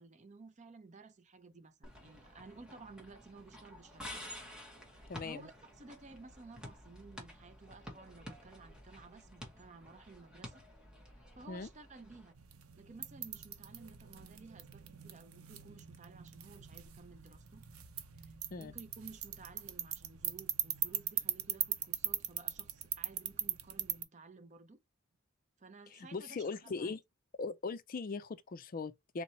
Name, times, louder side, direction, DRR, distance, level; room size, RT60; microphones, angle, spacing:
voice 1, 0.0-4.0 5.2-10.6 11.3-12.3 12.8-17.6 18.2-24.8 25.6-27.0, right 3 dB, 35° right, 0.5 m, -55 dB
sound 1, 1.8-12.3, equal, 5° right, 1.2 m, -51 dB
voice 2, 5.1-5.5 11.5-11.7 18.5-18.7 25.9-27.0 27.4-29.2, left 4 dB, 40° left, 0.4 m, -40 dB
sound 2, 12.3-24.0, right 11 dB, 85° right, 0.7 m, -41 dB
3.8 x 2.9 x 4.1 m
head